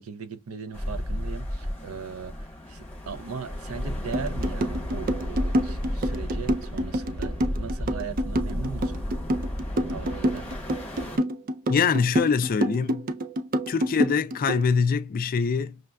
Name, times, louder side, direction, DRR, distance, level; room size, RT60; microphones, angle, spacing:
voice 1, 0.0-9.0 9.9-10.5, right 6 dB, 90° right, 0.6 m, -38 dB
sound 1, 0.7-11.2, left 1 dB, 10° left, 1.2 m, -33 dB
sound 2, 4.1-14.6, equal, 40° right, 0.4 m, -27 dB
voice 2, 11.7-13.1 13.7-15.8, left 5 dB, 40° left, 0.3 m, -24 dB
6.3 x 2.3 x 2.2 m
head